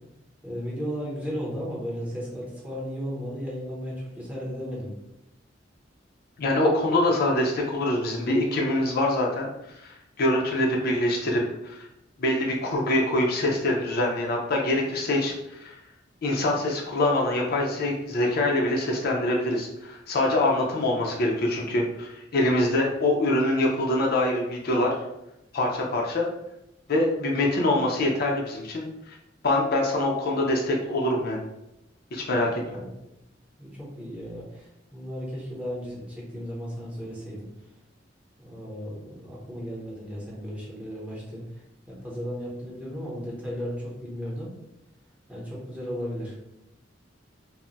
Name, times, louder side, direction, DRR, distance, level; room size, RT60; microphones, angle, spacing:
voice 1, 0.4-4.9 32.5-32.9 33.6-37.5 38.4-44.5 45.3-46.3, equal, 5° right, -6 dB, 0.8 m, -35 dB
voice 2, 6.4-9.5 9.8-11.8 12.2-15.7 16.2-24.9 25.5-26.3 26.9-29.2 29.4-31.4 32.1-32.6, left 1 dB, 55° left, -1 dB, 0.4 m, -24 dB
2.2 x 2.0 x 3.8 m, 0.87 s
head